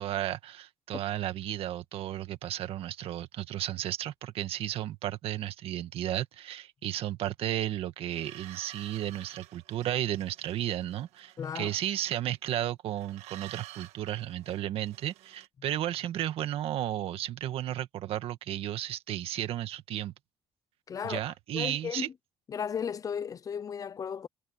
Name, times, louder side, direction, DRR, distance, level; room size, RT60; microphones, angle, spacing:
voice 1, 0.0-20.1 21.0-22.1, right 12 dB, 60° right, 1.7 m, -33 dB
sound 1, 8.1-12.6 12.9-15.5, right 14 dB, 85° right, 1.5 m, -51 dB
voice 2, 11.4-11.7 20.9-21.2 21.5-22.1 22.5-24.3, left 7 dB, 35° left, 0.6 m, -35 dB
cardioid pair, 135°, 11 cm